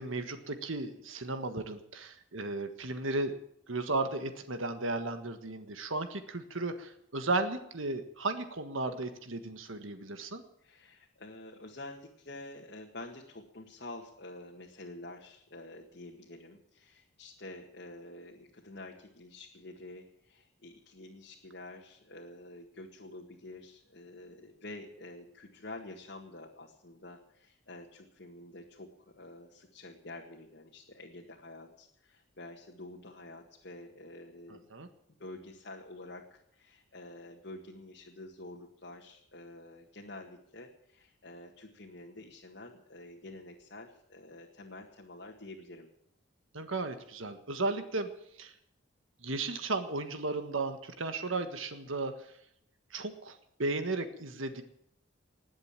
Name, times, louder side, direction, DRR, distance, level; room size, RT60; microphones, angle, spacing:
voice 1, 0.0-3.3 3.7-10.4 34.7-34.9 46.5-48.1 48.4-48.5 49.2-52.3 52.9-54.6, right 2 dB, 75° right, 8 dB, 1.6 m, -35 dB
voice 2, 10.6-34.6 35.2-45.9, left 2 dB, 55° left, -1 dB, 1.9 m, -48 dB
20.0 x 8.0 x 9.0 m, 0.73 s
head